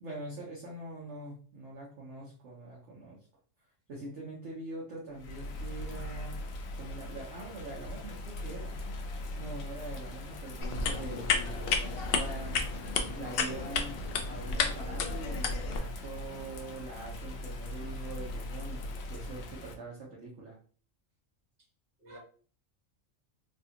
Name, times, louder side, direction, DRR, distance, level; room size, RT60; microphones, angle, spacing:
voice 1, 0.0-3.2 3.9-6.4 6.8-8.8 9.4-12.6 13.1-13.9 14.2-20.6, right 2 dB, 65° right, -3 dB, 1.1 m, -43 dB
Bird vocalization bird call bird song / Rain, 5.1-19.7, left 1 dB, 90° left, 1.0 m, -40 dB
sound 1, 10.6-15.8, left 5 dB, 65° left, 0.6 m, -32 dB
voice 2, 17.6-18.0 22.0-22.2, right 1 dB, 45° right, -3 dB, 1.5 m, -53 dB
3.3 x 2.3 x 2.8 m, 0.41 s
omnidirectional pair, 1.4 m